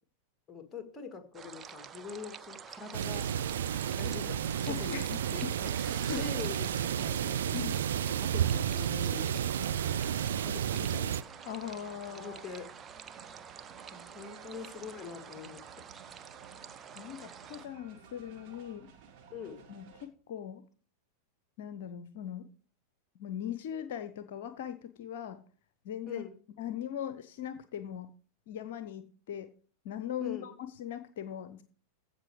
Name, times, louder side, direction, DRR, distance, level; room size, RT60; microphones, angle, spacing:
voice 1, 0.5-3.3 4.0-5.0 5.3-5.7 6.1-7.5 8.1-10.0 10.4-11.2 12.2-12.7 13.9-15.6 19.3-19.6 26.1-26.4 30.2-30.6, left 5 dB, 15° left, 8 dB, 1.8 m, -44 dB
sound 1, 1.3-17.7, right 7 dB, 20° right, 0.6 m, -48 dB
sound 2, 2.9-20.1, right 7 dB, 45° right, 2.0 m, -56 dB
sound 3, 2.9-11.2, right 9 dB, 65° right, 0.4 m, -31 dB
voice 2, 4.7-5.5 6.1-6.3 7.5-7.8 11.5-12.4 16.9-18.9 19.7-20.6 21.6-22.5 23.2-25.4 25.8-26.2 26.6-28.1 28.5-29.5 29.8-31.6, left 10 dB, 55° left, 11 dB, 0.7 m, -40 dB
15.0 x 5.4 x 4.8 m, 0.43 s
figure-of-eight pair, 90°, 0 cm